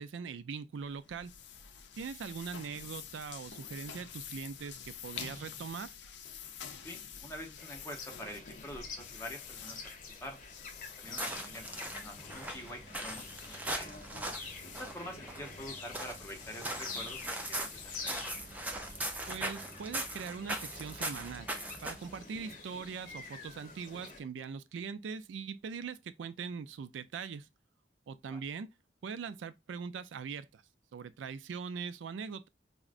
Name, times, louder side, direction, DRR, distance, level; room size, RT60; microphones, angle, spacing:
voice 1, 0.0-1.3 2.0-5.9 19.3-21.5 21.8-27.5 28.1-28.7 29.0-30.6 30.9-32.5, right 6 dB, 90° right, 0.4 m, -41 dB
sound 1, 0.8-19.2, left 7 dB, 75° left, 0.5 m, -49 dB
voice 2, 6.7-10.4 11.0-13.9 14.7-18.2 28.3-28.4, equal, 15° left, 0.8 m, -46 dB
sound 2, 7.6-24.2, left 4 dB, 45° left, 0.7 m, -48 dB
sound 3, 11.0-22.2, right 1 dB, 10° right, 0.4 m, -40 dB
4.8 x 2.1 x 2.4 m
head